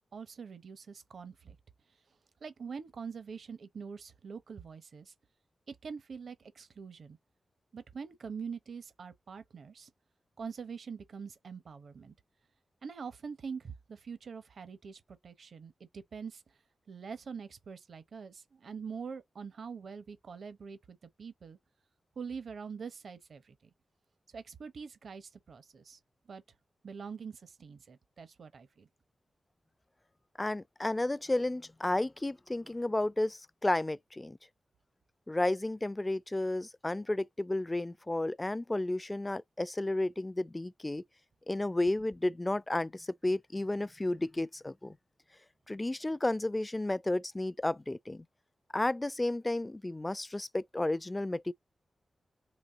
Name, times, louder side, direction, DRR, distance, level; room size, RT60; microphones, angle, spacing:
voice 1, 0.1-1.6 2.4-5.1 5.7-7.2 7.7-9.9 10.4-12.1 12.8-16.4 16.9-21.6 22.2-23.5 24.3-26.0 26.3-26.4 26.8-28.9, right 6 dB, 75° right, 0.8 m, -44 dB
voice 2, 30.4-34.4 35.3-41.0 41.5-45.0 45.7-48.2 48.7-51.5, left 2 dB, 25° left, 0.3 m, -32 dB
4.1 x 2.9 x 3.9 m
cardioid pair, 60°, 0 cm